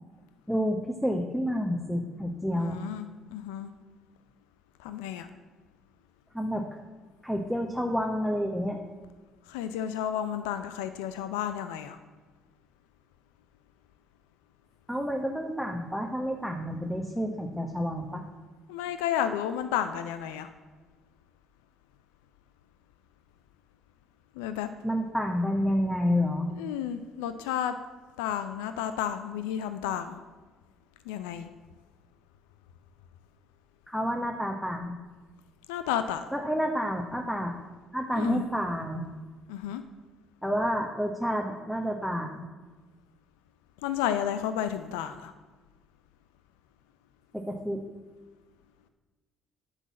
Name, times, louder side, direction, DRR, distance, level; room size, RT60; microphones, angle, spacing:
voice 1, 0.5-2.8 6.3-6.6 7.2-8.8 14.9-18.2 24.8-26.5 33.9-34.9 36.3-37.5 37.9-39.0 40.4-42.4 47.3-47.8, equal, ahead, 2 dB, 1.0 m, -29 dB
voice 2, 2.5-3.7 4.8-5.3 9.5-12.0 18.7-20.5 24.4-24.7 26.5-27.7 28.2-30.2 31.1-31.5 35.7-36.2 38.1-38.4 39.5-39.8 43.8-45.3, left 10 dB, 85° left, 10 dB, 0.4 m, -32 dB
9.8 x 4.0 x 7.3 m, 1.3 s
supercardioid pair, 65°, 0 cm